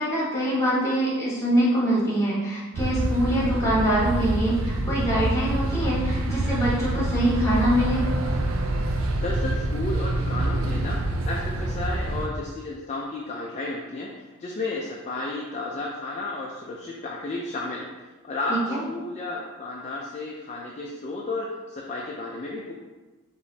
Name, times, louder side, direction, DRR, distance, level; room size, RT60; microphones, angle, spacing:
voice 1, 0.0-8.1 18.5-18.8, right 1 dB, 15° left, -6 dB, 1.1 m, -24 dB
sound 1, 2.7-12.3, right 1 dB, 70° right, 0.5 m, -26 dB
voice 2, 9.1-11.0 11.3-14.1 14.4-17.9 18.2-18.6 18.8-22.7, left 2 dB, 30° left, -2 dB, 0.3 m, -32 dB
4.9 x 3.0 x 2.7 m, 1.2 s
head